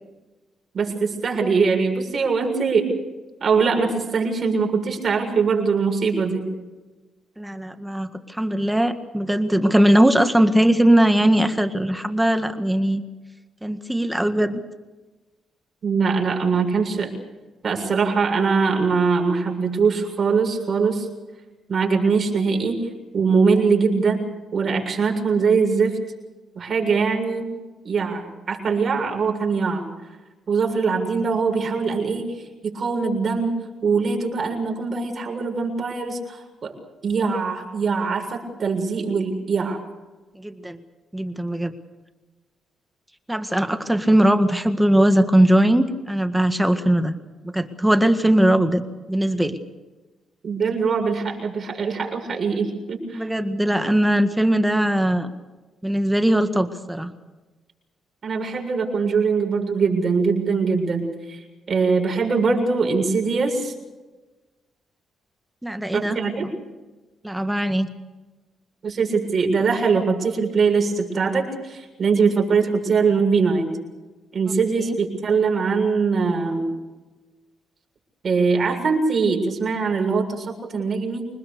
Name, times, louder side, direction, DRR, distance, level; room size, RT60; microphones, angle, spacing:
voice 1, 0.7-2.9 3.4-6.5 15.8-17.1 17.6-21.1 21.7-24.2 24.5-26.0 26.6-27.5 27.8-29.9 30.5-32.4 32.6-33.6 33.8-36.8 37.0-39.8 50.4-53.3 58.2-63.7 65.9-66.5 68.8-73.7 74.3-76.7 78.2-81.3, right 5 dB, 45° right, 2 dB, 7.0 m, -22 dB
voice 2, 7.4-13.0 13.6-14.6 40.4-40.8 41.1-41.7 43.3-47.2 47.4-48.8 49.1-49.6 53.1-55.3 55.8-57.1 65.6-66.5 67.2-67.9 74.9-75.0, right 1 dB, 5° right, 8 dB, 1.8 m, -20 dB
26.0 x 20.5 x 6.9 m, 1.2 s
cardioid pair, 90°, 0 cm